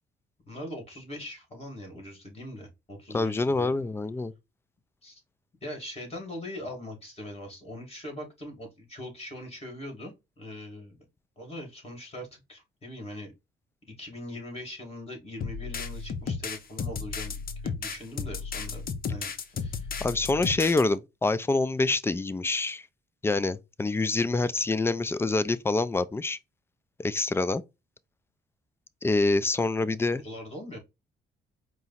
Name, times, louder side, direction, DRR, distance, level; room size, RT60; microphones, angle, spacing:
voice 1, 0.5-3.7 5.0-5.2 5.6-11.0 11.4-13.3 14.0-17.3 17.6-18.8 19.1-20.0 30.1-30.8, left 1 dB, 30° left, 2.2 m, -41 dB
voice 2, 3.1-4.3 20.0-22.8 23.2-26.4 27.0-27.6 29.0-30.2, left 3 dB, 10° left, 0.4 m, -26 dB
sound 1, 15.4-20.8, left 5 dB, 45° left, 0.7 m, -34 dB
4.7 x 2.0 x 4.1 m
cardioid pair, 90°, 20 cm